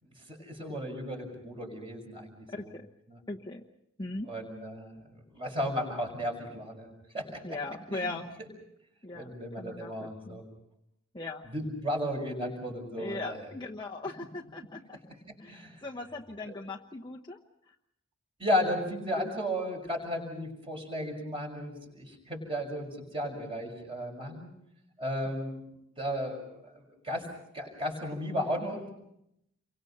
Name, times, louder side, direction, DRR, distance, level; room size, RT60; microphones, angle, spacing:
voice 1, 0.0-2.7 3.1-3.2 4.2-6.9 7.1-7.4 7.9-8.2 9.1-10.4 11.4-13.5 15.5-15.8 16.4-16.5 18.4-24.5 25.0-25.6 26.0-27.3 27.5-28.9, equal, 25° right, 2 dB, 6.0 m, -34 dB
voice 2, 2.5-2.9 3.3-3.6 4.0-4.3 7.4-8.3 9.0-9.3 9.6-10.4 11.1-11.4 13.0-15.0 15.4-17.4, left 2 dB, 20° left, 0 dB, 1.1 m, -39 dB
29.0 x 24.0 x 5.7 m, 0.78 s
head